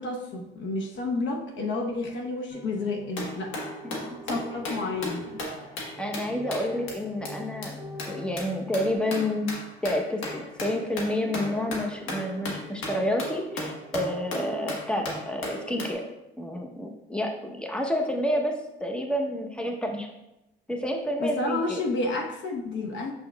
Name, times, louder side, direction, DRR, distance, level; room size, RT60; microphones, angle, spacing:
voice 1, 0.0-3.6 4.3-5.4 21.2-23.1, left 2 dB, 70° left, 2 dB, 1.0 m, -30 dB
sound 1, 2.5-8.9, left 1 dB, 25° right, 1.8 m, -45 dB
sound 2, 3.2-6.9 7.3-7.4 7.6-7.7 8.0-15.9, left 1 dB, 90° left, 1.3 m, -36 dB
voice 2, 3.8-4.2 6.0-7.8 8.1-9.5 9.8-16.0 16.4-20.1 20.7-21.8, left 1 dB, 5° left, 3 dB, 0.8 m, -29 dB
6.7 x 6.2 x 2.3 m, 0.92 s
cardioid pair, 90°, 20 cm